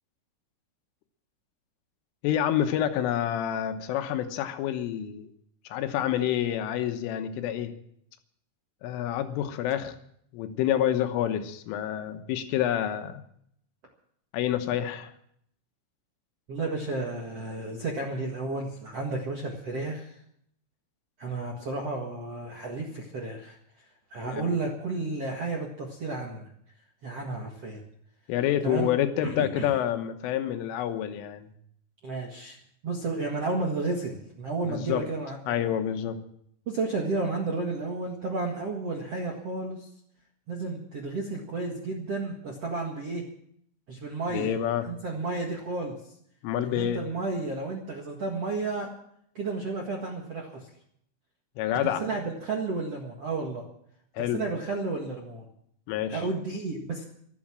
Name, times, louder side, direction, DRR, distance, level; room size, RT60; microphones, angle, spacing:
voice 1, 2.2-5.3 5.7-7.7 8.8-10.0 10.3-13.2 14.3-15.1 24.3-24.5 28.3-31.5 34.7-35.1 35.5-36.2 44.3-44.9 46.4-47.0 51.6-52.1 54.2-54.4 55.9-56.2, left 11 dB, 85° left, 8 dB, 3.7 m, -28 dB
voice 2, 16.5-20.1 21.2-23.6 24.1-26.5 27.0-27.8 28.6-28.9 29.2-29.7 32.0-32.6 32.8-35.7 36.7-39.9 40.5-43.2 43.9-44.5 44.9-46.0 46.6-48.9 49.3-50.7 51.8-53.6 54.2-55.4 56.1-57.0, right 3 dB, 60° right, 1 dB, 1.6 m, -32 dB
14.0 x 12.5 x 7.5 m, 0.69 s
omnidirectional pair, 5.6 m